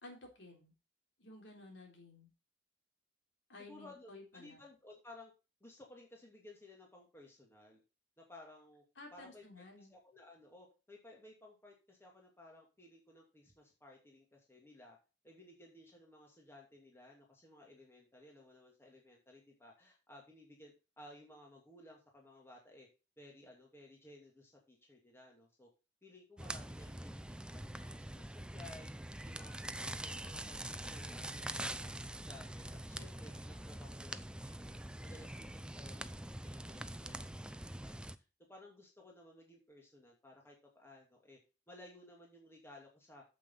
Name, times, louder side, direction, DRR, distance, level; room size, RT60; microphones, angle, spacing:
voice 1, 0.0-0.7 1.2-2.3 3.5-4.6 9.0-9.9, left 2 dB, 70° left, 2 dB, 3.6 m, -54 dB
voice 2, 3.7-5.3 5.6-7.8 8.2-8.8 9.1-15.0 15.2-22.9 23.2-25.7 26.0-28.9 29.2-31.9 32.3-34.7 35.0-37.4 37.8-38.0 38.5-41.4 41.7-43.2, left 1 dB, 15° left, -1 dB, 2.7 m, -58 dB
sound 1, 26.4-38.2, right 1 dB, 5° right, 0.4 m, -44 dB
8.9 x 8.1 x 4.0 m, 0.30 s
head